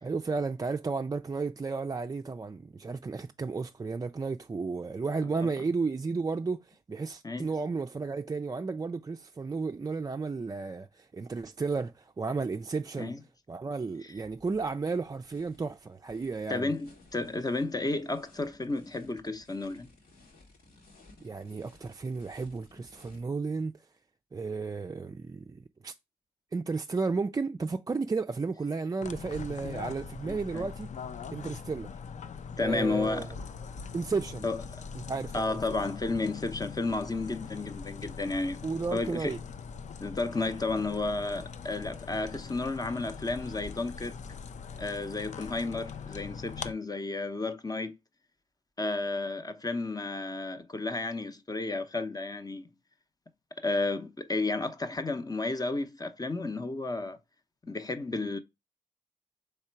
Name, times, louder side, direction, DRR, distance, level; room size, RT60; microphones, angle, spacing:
voice 1, 0.0-13.1 13.5-16.7 21.2-23.9 24.3-25.9 26.5-30.9 31.3-31.9 32.6-33.3 33.9-34.5 34.9-35.6 38.6-39.4, right 4 dB, 25° right, 0.4 m, -33 dB
sound 1, 14.1-23.2, left 2 dB, 80° left, 1.8 m, -58 dB
voice 2, 16.5-19.9 30.2-30.7 32.6-33.3 34.4-34.6 35.3-38.6 38.9-39.3 40.0-44.2 44.8-48.0 48.8-52.7 53.6-57.2 57.6-58.4, left 3 dB, 25° left, 0.7 m, -32 dB
sound 2, 29.0-46.7, left 6 dB, 55° left, 0.5 m, -42 dB
3.6 x 3.3 x 4.4 m
supercardioid pair, 50°, 15 cm